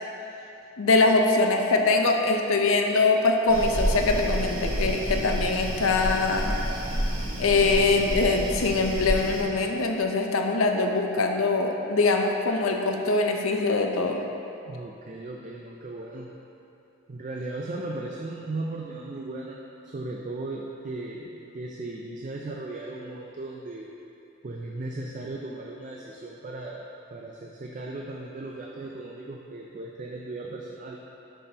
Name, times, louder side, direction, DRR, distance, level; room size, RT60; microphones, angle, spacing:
voice 1, 0.8-6.6 7.4-14.2, left 3 dB, 85° left, 3 dB, 0.6 m, -23 dB
sound 1, 3.5-9.4, equal, 80° right, 1.3 m, -29 dB
voice 2, 14.7-16.3 17.1-23.9 24.4-31.0, right 2 dB, 35° right, -1 dB, 0.4 m, -37 dB
10.5 x 5.6 x 2.8 m, 2.8 s
head